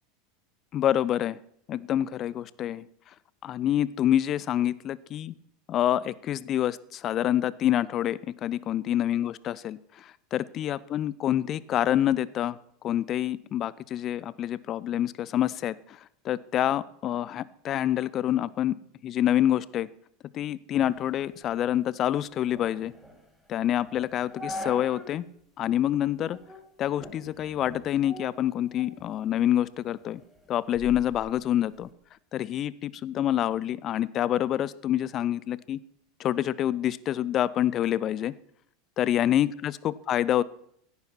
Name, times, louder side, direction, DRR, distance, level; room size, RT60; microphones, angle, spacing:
voice 1, 0.7-1.4 1.7-2.9 3.4-5.3 5.7-12.6 12.8-16.0 16.2-18.7 19.0-19.9 20.3-22.9 23.5-25.3 25.6-26.4 26.8-30.2 30.5-31.9 32.3-35.8 36.2-38.3 39.0-40.4, left 11 dB, 35° left, 20 dB, 0.6 m, -27 dB
sound 1, 20.7-25.2 25.6-25.7 26.3-26.7 27.0-29.1 29.5-31.9, left 1 dB, ahead, 3.0 m, -43 dB
16.0 x 9.7 x 6.0 m, 0.70 s
figure-of-eight pair, 80°, 0 cm